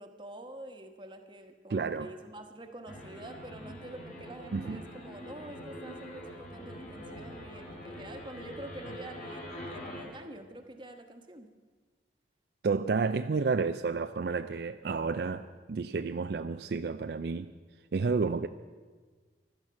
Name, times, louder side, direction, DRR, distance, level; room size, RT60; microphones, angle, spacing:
voice 1, 0.0-11.5, right 1 dB, 25° right, 6 dB, 1.1 m, -47 dB
voice 2, 1.7-2.1 4.5-4.8 12.6-17.5 17.9-18.5, right 4 dB, 60° right, 9 dB, 0.4 m, -31 dB
sound 1, 2.9-10.0, left 1 dB, 45° left, 3.2 m, -44 dB
15.5 x 12.5 x 5.8 m, 1.4 s
head